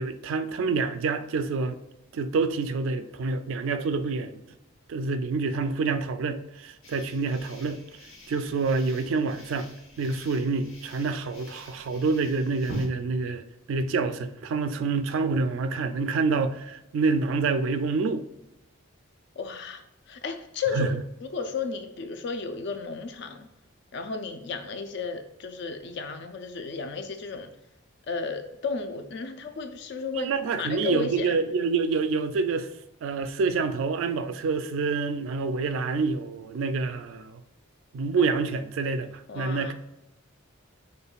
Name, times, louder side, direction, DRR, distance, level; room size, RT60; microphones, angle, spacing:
voice 1, 0.0-1.8 2.1-4.4 4.9-7.8 8.3-9.7 10.0-13.4 13.7-18.2 20.7-20.9 30.1-32.7 33.0-37.4 37.9-39.7, right 4 dB, 70° right, 0.3 m, -27 dB
sound 1, 6.8-12.9, equal, 85° left, 1.3 m, -45 dB
voice 2, 19.4-19.8 20.1-20.9 21.2-23.5 23.9-27.5 28.1-31.3 39.3-39.7, left 4 dB, 55° left, 0.4 m, -33 dB
5.2 x 2.2 x 2.3 m
head